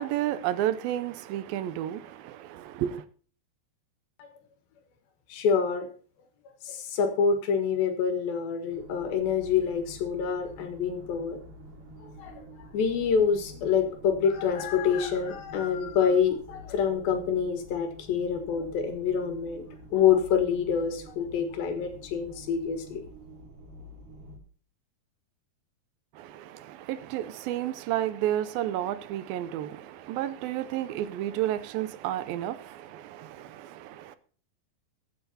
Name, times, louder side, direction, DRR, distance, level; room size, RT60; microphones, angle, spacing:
voice 1, 0.0-3.0 26.2-34.2, right 12 dB, 85° right, 2.5 m, -31 dB
voice 2, 5.3-5.9 6.6-11.4 12.2-12.4 12.7-19.6 19.9-23.0, left 7 dB, 80° left, 3.3 m, -26 dB
sound 1, 8.7-24.4, equal, 60° right, 3.6 m, -48 dB
22.0 x 8.0 x 2.8 m
omnidirectional pair, 4.2 m